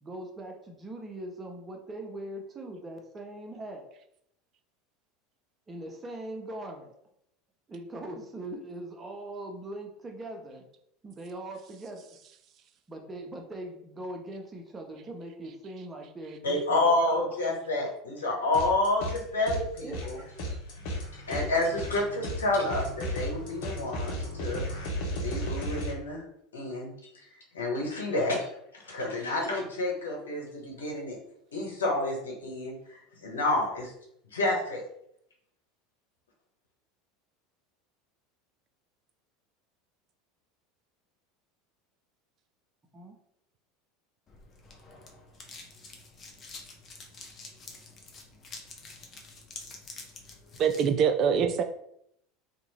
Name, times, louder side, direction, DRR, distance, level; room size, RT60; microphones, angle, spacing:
voice 1, 0.0-3.9 5.7-7.0 7.7-10.7 11.0-12.2 12.9-17.2 19.8-20.1 42.9-43.1, right 1 dB, 25° right, 2 dB, 0.8 m, -41 dB
voice 2, 16.4-20.2 21.1-24.7 25.2-26.2 26.5-26.9 27.2-27.3 27.5-31.2 31.5-33.9 34.3-34.8, left 2 dB, 90° left, -1 dB, 1.0 m, -29 dB
sound 1, 18.5-19.2 19.5-25.9, equal, 60° left, 1.1 m, -35 dB
sound 2, 44.3-50.9, left 3 dB, 35° left, 0.8 m, -47 dB
voice 3, 50.6-51.6, right 7 dB, 45° right, 6 dB, 0.3 m, -24 dB
2.9 x 2.6 x 4.1 m, 0.73 s
hypercardioid pair, 90°, 0 cm